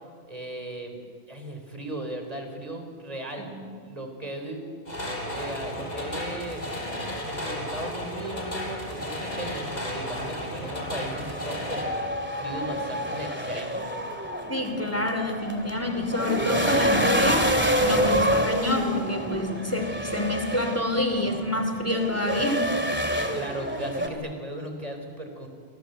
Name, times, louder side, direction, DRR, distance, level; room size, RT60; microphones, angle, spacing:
voice 1, 0.2-1.0 1.3-5.0 5.3-6.7 7.2-13.9 23.0-25.5, right 1 dB, 35° right, 5 dB, 4.0 m, -37 dB
sound 1, 4.9-11.8, left 1 dB, 40° left, 5.0 m, -33 dB
sound 2, 8.6-24.1, equal, 10° right, 2.3 m, -28 dB
voice 2, 14.5-17.5 17.8-22.8, left 1 dB, 15° left, 6 dB, 2.7 m, -27 dB
29.0 x 24.0 x 8.0 m, 2.2 s
omnidirectional pair, 1.1 m